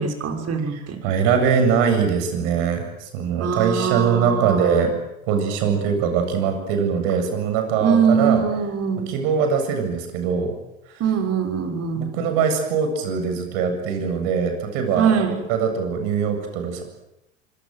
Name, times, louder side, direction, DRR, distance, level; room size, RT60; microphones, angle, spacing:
voice 1, 0.0-1.0 3.4-4.9 7.8-9.1 11.0-12.0 15.0-15.4, right 6 dB, 40° right, 3 dB, 6.4 m, -22 dB
voice 2, 0.7-4.9 5.3-8.4 9.1-10.5 11.9-15.2 15.5-16.8, right 6 dB, 65° right, 6 dB, 7.7 m, -22 dB
25.5 x 24.5 x 7.9 m, 0.85 s
hypercardioid pair, 80°, 38 cm